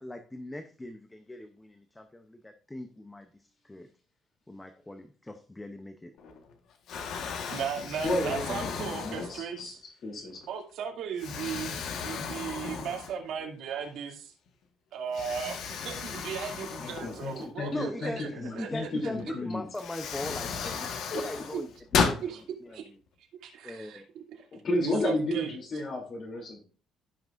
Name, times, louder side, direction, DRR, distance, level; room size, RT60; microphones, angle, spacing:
voice 1, 0.0-3.3 3.6-3.9 4.5-6.1 17.7-21.7 22.1-22.2 22.6-22.8 23.6-24.0, left 1 dB, 10° left, 7 dB, 0.6 m, -40 dB
Explosion, 6.2-6.5 6.9-9.7 10.3-10.5 11.2-13.4 13.8-13.9 15.1-17.8 19.2-19.3 19.7-22.2, left 6 dB, 65° left, 1.4 m, -34 dB
voice 2, 7.5-9.8 10.5-14.3 14.9-18.3 18.5-18.9 22.3-22.4 22.7-22.8 23.4-24.0 24.4-24.5 24.8-25.5, right 7 dB, 70° right, 0 dB, 2.5 m, -36 dB
voice 3, 8.0-10.4 16.8-19.6 20.6-20.7 21.1-21.2 24.5-26.6, left 1 dB, 40° left, -1 dB, 2.9 m, -33 dB
15.5 x 5.9 x 2.5 m, 0.39 s
cardioid pair, 155°, 0 cm